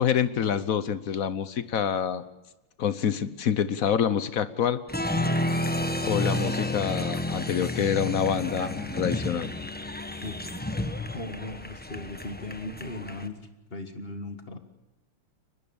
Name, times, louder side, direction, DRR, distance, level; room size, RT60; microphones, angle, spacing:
voice 1, 0.0-2.2 2.8-5.2 6.0-9.5, left 8 dB, 55° left, 14 dB, 1.1 m, -27 dB
Applause, 4.9-13.3, left 1 dB, 10° left, 0.6 m, -31 dB
voice 2, 11.1-14.6, left 2 dB, 30° left, 8 dB, 1.7 m, -38 dB
23.0 x 20.5 x 7.1 m, 1.0 s
omnidirectional pair, 2.3 m